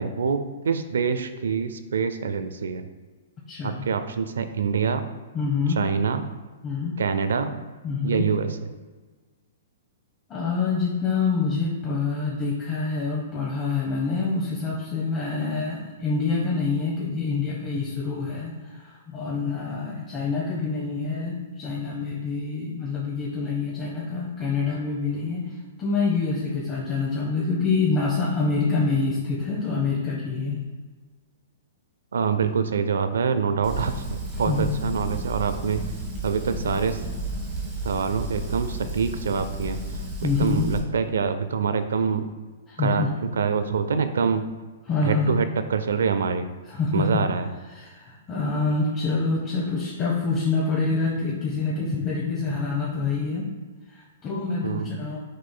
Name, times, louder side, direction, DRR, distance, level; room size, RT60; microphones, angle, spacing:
voice 1, 0.0-2.9 3.6-5.0 5.7-6.3 7.0-7.6 8.0-8.7 32.1-35.8 36.2-37.0 37.8-39.8 40.2-42.3 42.8-43.0 43.3-44.4 45.0-46.5 46.9-47.5 54.6-54.9, right 6 dB, 85° right, 10 dB, 0.4 m, -25 dB
voice 2, 3.5-3.8 5.3-5.8 6.6-6.9 7.8-8.3 10.3-30.6 34.5-34.7 40.2-40.7 42.7-43.1 44.9-45.4 46.7-47.2 47.7-53.5 53.9-55.2, left 4 dB, 20° left, -5 dB, 0.8 m, -26 dB
Fire, 33.6-40.8, right 1 dB, 30° right, 1.5 m, -33 dB
6.2 x 3.8 x 2.2 m, 1.3 s
hypercardioid pair, 155°, 0 cm